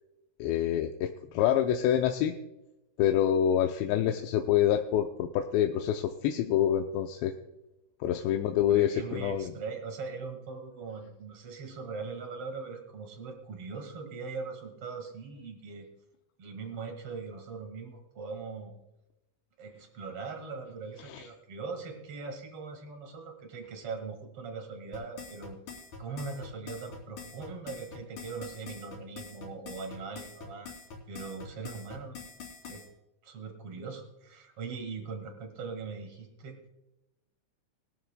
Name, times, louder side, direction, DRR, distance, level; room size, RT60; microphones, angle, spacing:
voice 1, 0.4-2.3 3.0-7.3 8.0-9.5 21.0-21.3, left 10 dB, 85° left, 4 dB, 2.9 m, -27 dB
voice 2, 3.9-4.2 8.7-15.9 16.4-18.7 19.6-25.6 26.0-30.7 31.1-32.2 32.6-32.8 33.2-36.6, right 4 dB, 50° right, 4 dB, 1.9 m, -40 dB
sound 1, 24.9-32.9, left 5 dB, 50° left, 4.2 m, -45 dB
20.5 x 13.0 x 2.2 m, 0.94 s
omnidirectional pair, 4.9 m